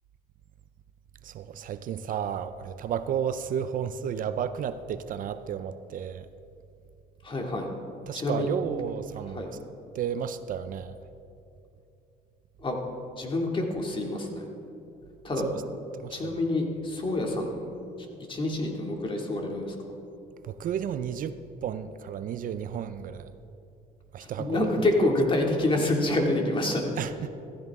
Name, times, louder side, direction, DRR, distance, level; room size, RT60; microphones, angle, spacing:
voice 1, 1.2-6.3 8.1-9.5 9.9-11.0 15.3-15.6 15.9-16.4 20.4-23.4 24.1-24.6 27.0-27.3, right 8 dB, 55° right, 12 dB, 0.5 m, -32 dB
voice 2, 7.2-7.7 8.1-8.5 9.3-9.5 12.6-12.8 13.2-14.5 15.2-15.5 16.1-17.7 18.0-19.8 24.2-26.9, left 2 dB, 30° left, 1 dB, 2.3 m, -27 dB
15.0 x 14.5 x 3.6 m, 2.7 s
cardioid pair, 110°, 17 cm